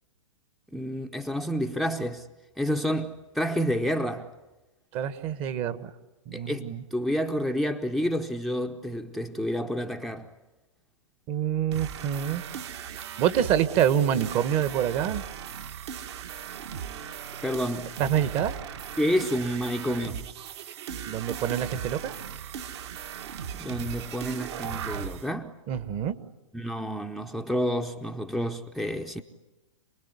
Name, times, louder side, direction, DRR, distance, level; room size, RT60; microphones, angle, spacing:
voice 1, 0.7-2.3 2.6-4.3 6.3-10.3 17.4-17.9 19.0-20.3 23.5-25.6 26.5-29.2, equal, ahead, 0.8 m, -29 dB
voice 2, 4.9-5.9 6.3-6.8 11.3-12.4 13.2-15.2 18.0-18.6 21.1-22.1 25.7-26.1, right 9 dB, 35° right, 1.4 m, -26 dB
sound 1, 11.7-25.3, right 8 dB, 55° right, 1.9 m, -37 dB
28.0 x 20.5 x 9.7 m
hypercardioid pair, 120°, 17 cm